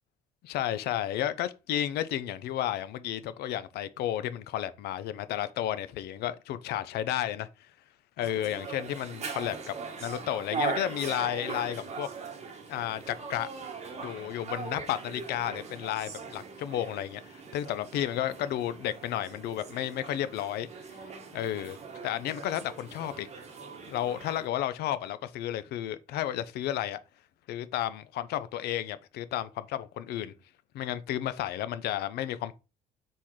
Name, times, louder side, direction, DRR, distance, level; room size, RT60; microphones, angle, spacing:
voice 1, 0.4-7.5 8.2-9.7 10.0-12.1 12.7-13.5 14.0-20.7 21.3-21.8 22.0-23.3 23.9-27.0 27.5-30.3 30.7-32.5, left 12 dB, 70° left, 0.5 m, -32 dB
sound 1, 8.2-24.5, right 5 dB, 40° right, 1.0 m, -40 dB
4.3 x 3.6 x 3.1 m
cardioid pair, 110°, 17 cm